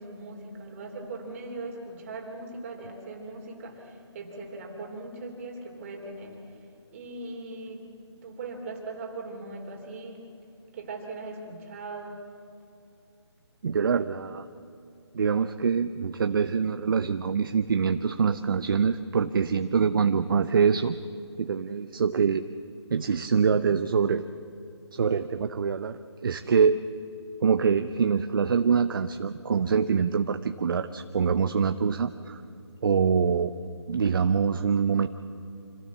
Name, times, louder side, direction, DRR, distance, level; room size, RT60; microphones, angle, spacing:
voice 1, 0.0-6.6 6.9-7.9 8.2-10.2 10.7-12.2, right 2 dB, 30° right, 1 dB, 3.4 m, -39 dB
voice 2, 13.6-14.5 15.1-21.0 21.4-22.4 22.9-24.3 24.9-26.8 27.4-32.4 32.8-33.5 33.9-35.1, right 6 dB, 50° right, 10 dB, 0.7 m, -24 dB
26.0 x 16.0 x 7.3 m, 2.7 s
figure-of-eight pair, 160°, 15 cm